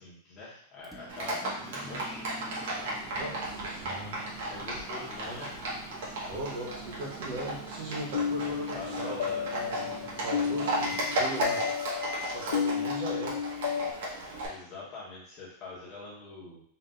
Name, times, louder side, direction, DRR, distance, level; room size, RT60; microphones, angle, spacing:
voice 1, 0.0-2.2 4.5-5.6 8.4-9.5 14.4-16.6, left 3 dB, 25° left, -5 dB, 1.1 m, -44 dB
Microwave oven, 0.8-12.4, equal, ahead, 0.4 m, -45 dB
Livestock farm animals working animals, 1.1-14.5, right 1 dB, 65° right, 1.3 m, -35 dB
voice 2, 3.2-4.3 5.3-5.4 6.3-11.6 12.3-13.4, right 1 dB, 40° right, -2 dB, 1.0 m, -39 dB
sound 1, 8.1-13.9, left 7 dB, 65° left, 0.3 m, -33 dB
3.9 x 2.7 x 3.6 m, 0.63 s
supercardioid pair, 175°, 0 cm